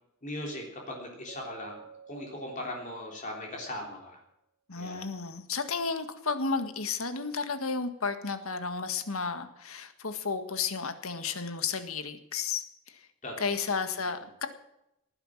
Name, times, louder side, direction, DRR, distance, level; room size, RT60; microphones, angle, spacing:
voice 1, 0.2-1.8 2.1-4.2 4.8-5.1 13.2-13.5, left 1 dB, 35° left, -1 dB, 3.5 m, -39 dB
Keyboard (musical), 1.3-3.7, right 6 dB, 45° right, 2.5 m, -52 dB
voice 2, 4.7-12.6 13.4-14.5, left 5 dB, 75° left, 9 dB, 1.8 m, -32 dB
18.5 x 10.0 x 7.5 m, 0.83 s
head